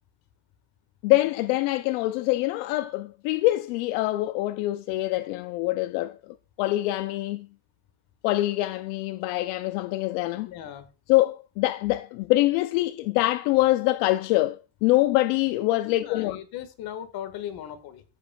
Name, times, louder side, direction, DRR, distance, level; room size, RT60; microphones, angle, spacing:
voice 1, 1.0-6.2 6.6-7.5 8.2-10.5 11.1-16.4, left 17 dB, 75° left, 0.6 m, -24 dB
voice 2, 10.4-10.9 15.8-18.0, left 10 dB, 50° left, 1.8 m, -38 dB
14.5 x 6.6 x 2.3 m
cardioid pair, 140°, 46 cm